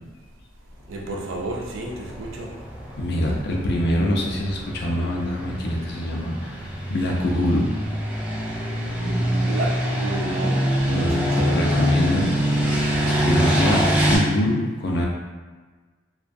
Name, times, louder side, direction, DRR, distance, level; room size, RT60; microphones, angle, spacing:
voice 1, 0.9-2.5 9.0-11.7 13.0-13.4, right 2 dB, 90° right, 0 dB, 0.4 m, -32 dB
sound 1, 1.2-14.2, equal, 10° right, 0.4 m, -24 dB
voice 2, 3.0-7.7 10.9-12.3 12.5-12.7 13.0-13.8 14.1-15.0, left 1 dB, 60° left, -1 dB, 0.4 m, -24 dB
2.3 x 2.2 x 2.5 m, 1.4 s
head